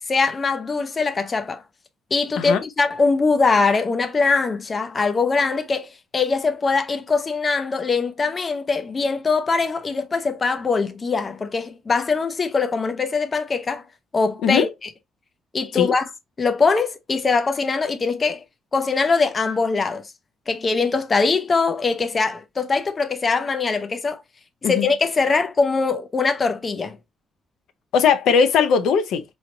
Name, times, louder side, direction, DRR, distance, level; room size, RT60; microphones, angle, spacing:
voice 1, 0.1-1.6 2.1-13.8 14.1-14.7 15.5-16.1 16.4-18.4 18.7-20.1 20.5-24.2 24.7-27.0, left 4 dB, 25° left, 0.5 m, -22 dB
voice 2, 27.9-29.2, left 6 dB, 85° left, 0.7 m, -19 dB
4.0 x 3.1 x 2.8 m
cardioid pair, 145°, 0 cm